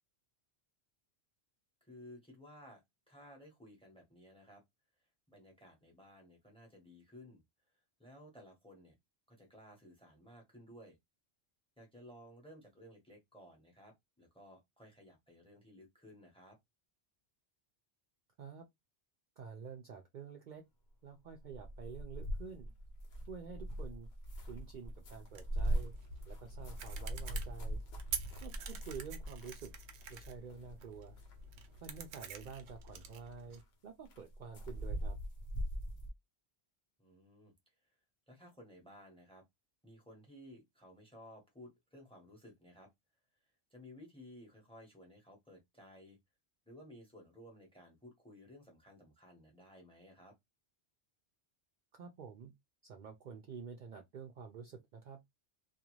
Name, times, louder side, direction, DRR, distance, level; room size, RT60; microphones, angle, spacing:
voice 1, 1.8-2.8 3.1-4.6 5.3-7.4 8.0-8.9 9.3-11.0 11.8-16.6 28.5-28.8 37.0-37.5 37.9-38.0 38.3-39.4 39.8-42.9 43.7-46.2 46.7-50.3, equal, 5° left, 0.9 m, -56 dB
voice 2, 19.4-20.6 21.0-22.7 23.3-24.1 24.5-25.9 26.3-27.8 28.4-29.7 30.1-31.2 31.8-35.2 51.9-52.5 52.8-55.2, right 6 dB, 55° right, 0.6 m, -49 dB
sound 1, 21.4-29.8 30.0-30.8 31.2-32.1 32.3-33.0 33.5-33.6 34.1-36.1, right 1 dB, 80° left, 1.1 m, -41 dB
sound 2, 25.3-33.6, right 6 dB, 85° right, 0.9 m, -48 dB
2.5 x 2.3 x 2.9 m
omnidirectional pair, 1.1 m